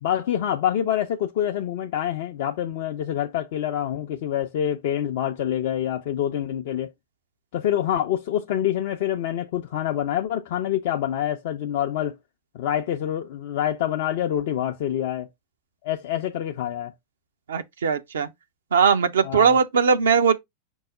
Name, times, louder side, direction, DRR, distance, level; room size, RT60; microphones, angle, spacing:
voice 1, 0.0-6.9 7.5-12.2 12.5-15.3 15.8-16.9 19.2-19.6, left 11 dB, 50° left, 0.4 m, -26 dB
voice 2, 17.5-18.3 18.7-20.3, right 6 dB, 65° right, 0.6 m, -19 dB
5.4 x 2.0 x 4.8 m
figure-of-eight pair, 90°, 0 cm